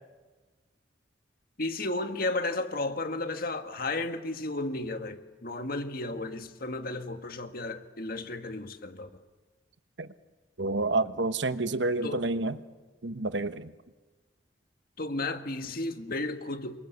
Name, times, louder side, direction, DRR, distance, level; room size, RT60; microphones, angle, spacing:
voice 1, 1.6-9.1 12.0-12.3 15.0-16.9, left 2 dB, 50° left, 1.8 m, -33 dB
voice 2, 10.6-12.5 13.0-13.7, right 2 dB, 70° right, 1.1 m, -29 dB
27.5 x 24.5 x 8.2 m
head